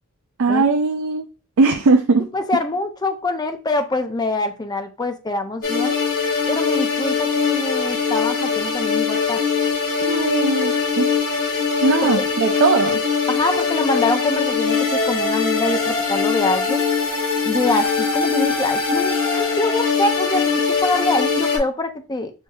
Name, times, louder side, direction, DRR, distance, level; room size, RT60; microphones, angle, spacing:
voice 1, 0.4-1.3 1.6-2.3 10.0-11.1 11.8-13.0, right 4 dB, 70° right, 4 dB, 0.4 m, -19 dB
voice 2, 2.3-6.0 6.5-9.4 12.0-12.3 13.3-16.8 17.4-22.3, left 2 dB, 20° left, 7 dB, 0.5 m, -24 dB
sound 1, 5.6-21.6, left 5 dB, 85° left, 2.0 m, -21 dB
6.3 x 2.6 x 2.3 m, 0.32 s
head